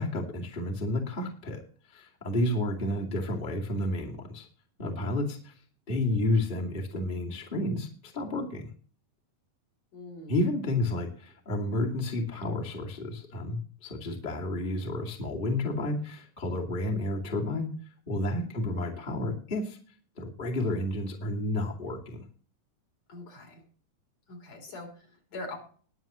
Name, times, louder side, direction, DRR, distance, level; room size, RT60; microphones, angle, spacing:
voice 1, 0.0-1.6 1.9-4.5 4.8-5.5 5.9-8.7 10.3-17.7 18.1-19.8 20.2-22.2, left 1 dB, 15° left, -1 dB, 1.9 m, -31 dB
voice 2, 9.9-10.4 18.4-18.7 23.1-23.6 24.3-25.6, left 2 dB, 50° left, 0 dB, 4.5 m, -43 dB
21.0 x 7.5 x 3.0 m, 0.42 s
omnidirectional pair, 3.9 m